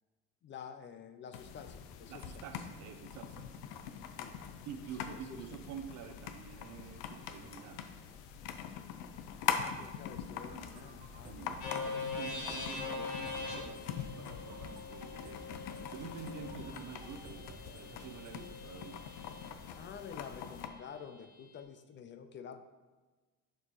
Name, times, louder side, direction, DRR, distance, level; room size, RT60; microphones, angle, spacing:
voice 1, 0.4-2.4 4.1-4.3 5.0-5.6 9.6-11.6 19.8-22.6, left 7 dB, 35° left, 8 dB, 0.5 m, -49 dB
sound 1, 1.3-20.7, left 8 dB, 85° left, 0.7 m, -43 dB
voice 2, 2.1-3.6 4.7-7.9 11.2-15.4 15.9-19.1, right 7 dB, 65° right, 6 dB, 0.7 m, -48 dB
sound 2, 10.5-18.5, right 4 dB, 20° right, 0.7 m, -55 dB
sound 3, 11.6-19.5, left 3 dB, 70° left, 1.7 m, -43 dB
10.5 x 4.5 x 3.1 m, 1.3 s
cardioid pair, 125°, 32 cm